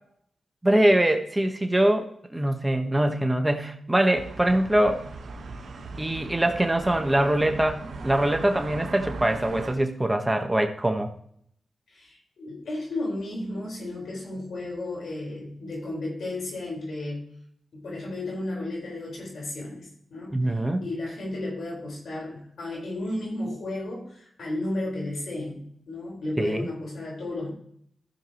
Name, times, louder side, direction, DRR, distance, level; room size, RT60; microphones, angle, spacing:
voice 1, 0.6-5.0 6.0-11.1 20.3-20.8 26.4-26.7, right 1 dB, 15° right, 6 dB, 1.2 m, -23 dB
sound 1, 4.1-9.7, right 3 dB, 70° right, 1.3 m, -38 dB
voice 2, 11.9-17.2 17.7-27.5, left 2 dB, 75° left, -4 dB, 4.6 m, -33 dB
14.5 x 6.8 x 3.0 m, 0.67 s
cardioid pair, 50°, 0 cm